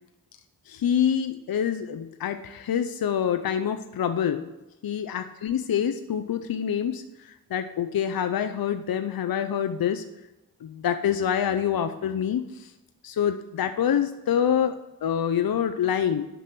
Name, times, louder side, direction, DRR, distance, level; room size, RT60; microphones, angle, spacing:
voice 1, 0.7-4.5 4.8-10.0 10.6-12.7 13.0-16.2, left 9 dB, 65° left, 8 dB, 0.6 m, -26 dB
8.2 x 6.0 x 7.6 m, 1.0 s
cardioid pair, 50°, 38 cm